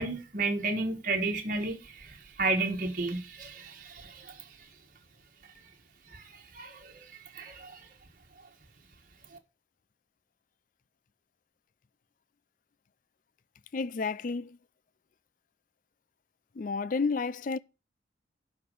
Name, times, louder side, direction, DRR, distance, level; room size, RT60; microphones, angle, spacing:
voice 1, 0.0-4.4 6.1-7.0 7.3-7.9, right 3 dB, 50° right, 1.5 m, -33 dB
voice 2, 13.7-14.6 16.5-17.6, left 4 dB, 50° left, 0.4 m, -31 dB
11.5 x 4.3 x 6.6 m
head